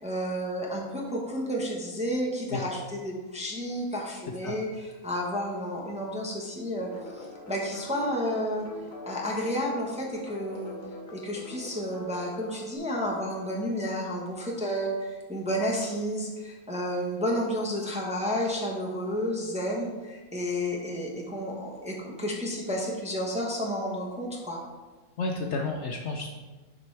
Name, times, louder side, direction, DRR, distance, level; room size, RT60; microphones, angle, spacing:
voice 1, 0.0-8.7 9.0-10.8 11.1-24.6, equal, 5° right, -3 dB, 0.8 m, -31 dB
sound 1, 6.7-12.8, left 1 dB, 40° left, 0.9 m, -44 dB
voice 2, 25.2-26.3, left 3 dB, 65° left, 2 dB, 0.8 m, -31 dB
6.8 x 5.3 x 3.3 m, 1.2 s
omnidirectional pair, 1.5 m